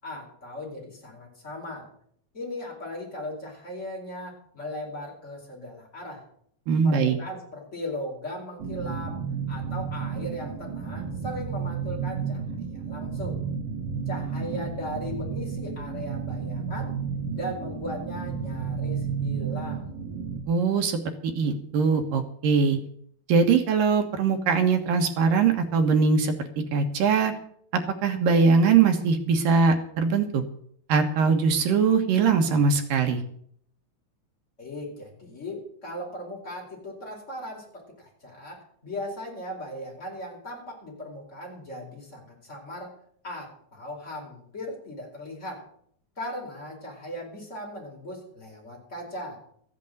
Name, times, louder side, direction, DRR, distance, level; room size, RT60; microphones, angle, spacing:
voice 1, 0.0-1.9 2.3-6.2 6.8-9.2 9.5-13.4 14.1-17.0 17.3-19.9 34.6-42.9 43.2-45.6 46.2-49.4, left 1 dB, 20° left, -2 dB, 4.8 m, -38 dB
voice 2, 6.7-7.2 20.5-22.8 23.3-26.3 26.7-27.3 27.7-30.4 30.9-33.2, right 5 dB, 70° right, 5 dB, 3.0 m, -22 dB
sound 1, 8.6-20.4, right 6 dB, 50° right, 2.2 m, -32 dB
14.5 x 8.4 x 7.9 m, 0.65 s
omnidirectional pair, 4.2 m